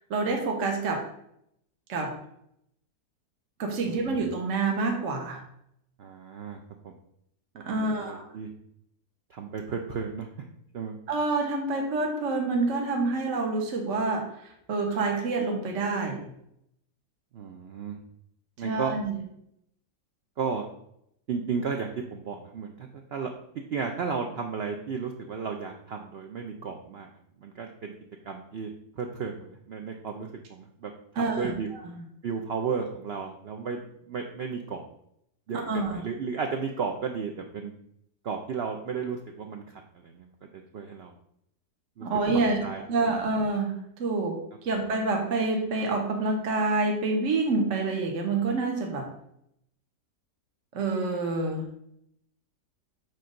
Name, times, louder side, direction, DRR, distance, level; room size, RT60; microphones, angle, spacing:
voice 1, 0.1-1.0 1.9-2.1 3.6-5.4 7.6-8.3 11.1-16.2 18.6-19.1 31.2-31.5 35.6-36.0 42.0-42.6 42.9-44.3 44.6-49.1 50.7-51.6, right 3 dB, 50° right, 2 dB, 1.3 m, -27 dB
voice 2, 3.8-4.2 6.0-6.9 7.8-8.5 9.3-10.5 10.7-11.0 17.3-18.0 18.6-19.0 20.4-20.7 21.3-27.1 27.4-27.9 28.2-31.7 32.2-33.8 34.1-34.8 35.5-37.7 38.2-40.3 40.7-41.1 42.0-42.1 42.6-42.8, right 5 dB, 70° right, 3 dB, 0.6 m, -34 dB
6.5 x 4.1 x 6.3 m, 0.76 s
omnidirectional pair, 1.8 m